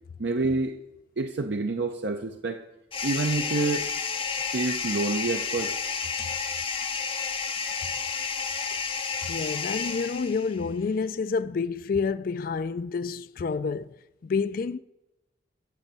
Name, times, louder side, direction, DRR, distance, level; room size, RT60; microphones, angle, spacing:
voice 1, 0.2-0.8 1.2-2.6 3.0-3.9 4.5-5.7, right 3 dB, 65° right, 0.6 m, -27 dB
sound 1, 2.9-10.6, left 5 dB, 30° left, 0.7 m, -31 dB
voice 2, 9.2-14.0 14.2-14.8, left 5 dB, 50° left, 0.3 m, -29 dB
9.3 x 7.1 x 8.0 m
head